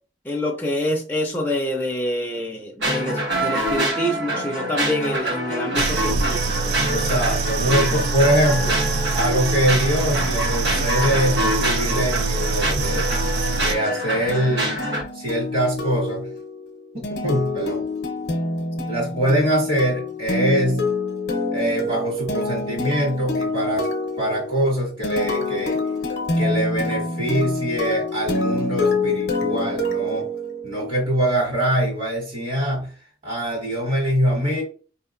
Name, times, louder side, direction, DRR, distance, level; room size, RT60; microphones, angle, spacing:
voice 1, 0.2-6.7, equal, 10° left, 0 dB, 0.4 m, -26 dB
sound 1, 2.8-15.0, right 1 dB, 85° right, 1.0 m, -25 dB
sound 2, 5.8-13.8, right 4 dB, 70° right, 0.3 m, -25 dB
voice 2, 6.8-8.8 9.1-13.1 13.6-14.8 15.1-16.3 16.9-17.8 18.9-20.8 21.5-23.9 24.2-25.8 26.4-30.3 30.6-32.9 33.2-34.6, equal, 50° right, -5 dB, 1.6 m, -23 dB
sound 3, 14.3-31.0, left 2 dB, 70° left, 0.6 m, -26 dB
4.7 x 2.8 x 2.5 m, 0.39 s
head